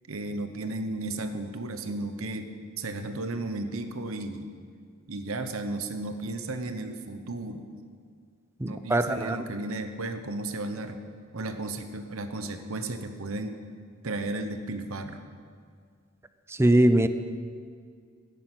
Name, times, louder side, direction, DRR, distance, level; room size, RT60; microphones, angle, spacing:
voice 1, 0.1-4.5 5.1-7.7 8.6-11.0 11.3-13.6 14.0-15.2, right 2 dB, 75° right, 8 dB, 1.0 m, -34 dB
voice 2, 8.6-9.4 16.5-17.1, right 1 dB, 10° right, 10 dB, 0.5 m, -22 dB
10.5 x 10.0 x 8.0 m, 2.1 s
head